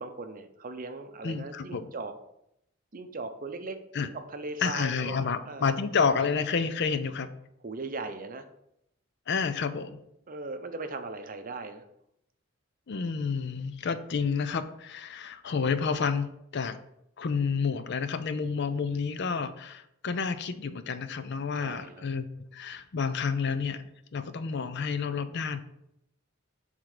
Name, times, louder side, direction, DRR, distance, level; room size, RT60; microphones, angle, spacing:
voice 1, 0.0-2.1 2.9-5.7 7.6-8.4 10.3-11.9 21.6-22.0, right 3 dB, 40° right, 8 dB, 0.7 m, -39 dB
voice 2, 1.2-1.9 3.9-4.1 4.6-7.3 9.3-10.0 12.9-16.8 17.2-23.8 24.1-25.6, left 5 dB, 55° left, 12 dB, 0.5 m, -30 dB
7.7 x 3.7 x 4.9 m, 0.79 s
head